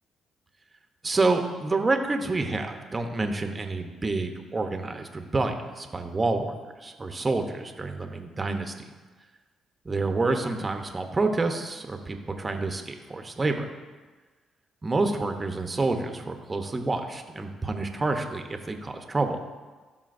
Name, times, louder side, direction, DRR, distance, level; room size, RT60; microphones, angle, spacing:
voice 1, 1.0-6.5 6.8-8.7 9.8-13.7 14.8-19.4, right 3 dB, 25° right, 5 dB, 0.8 m, -28 dB
13.5 x 5.6 x 2.6 m, 1.3 s
cardioid pair, 90°, 0 cm